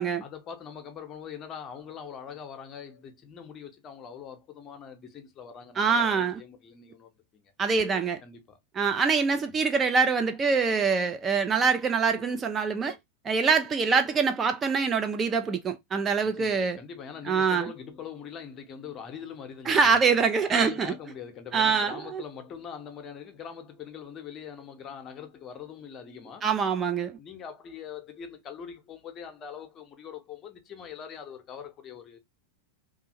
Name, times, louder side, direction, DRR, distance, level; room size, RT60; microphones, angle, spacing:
voice 1, 0.2-7.4 8.2-8.6 9.5-9.6 16.3-19.9 20.4-26.5 27.2-32.2, left 7 dB, 30° left, 0.7 m, -43 dB
voice 2, 5.8-6.4 7.6-8.2 8.7-13.0 13.2-16.8 17.3-17.7 19.7-20.9 21.5-22.2 26.4-27.2, right 5 dB, 20° right, 0.3 m, -24 dB
2.6 x 2.4 x 2.7 m
figure-of-eight pair, 90°, 0 cm